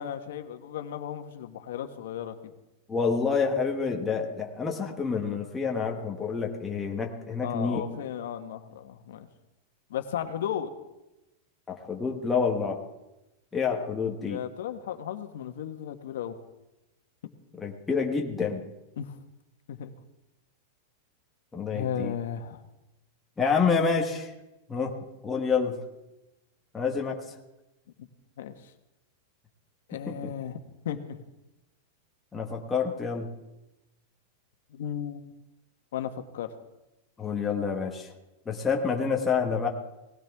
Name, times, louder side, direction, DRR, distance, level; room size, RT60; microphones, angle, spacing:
voice 1, 0.0-2.5 7.4-9.3 9.9-10.7 14.2-16.4 19.0-19.2 19.7-19.9 21.7-22.6 28.0-28.1 28.4-28.5 29.9-30.6 30.8-31.2 34.7-35.2 35.9-36.5, left 9 dB, 70° left, 7 dB, 1.3 m, -35 dB
voice 2, 2.9-7.9 11.7-12.8 13.5-14.4 17.6-18.7 21.5-22.1 23.4-24.3 24.7-25.0 25.2-25.8 26.7-27.4 30.1-30.3 32.3-33.3 37.2-38.1 38.4-39.7, left 5 dB, 10° left, 0 dB, 1.1 m, -28 dB
18.5 x 16.5 x 3.5 m, 0.95 s
supercardioid pair, 180°, 0 cm